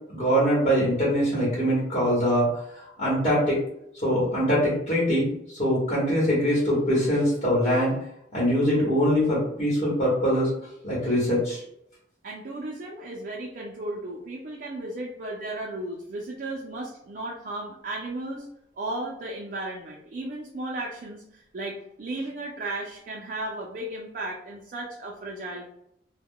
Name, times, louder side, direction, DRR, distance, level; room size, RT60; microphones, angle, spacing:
voice 1, 0.1-3.6 4.0-7.9 8.3-10.5 10.8-11.6, equal, 40° left, -7 dB, 1.0 m, -23 dB
voice 2, 12.2-18.5 18.8-25.7, right 2 dB, 50° right, -2 dB, 0.4 m, -35 dB
2.2 x 2.1 x 3.5 m, 0.76 s
head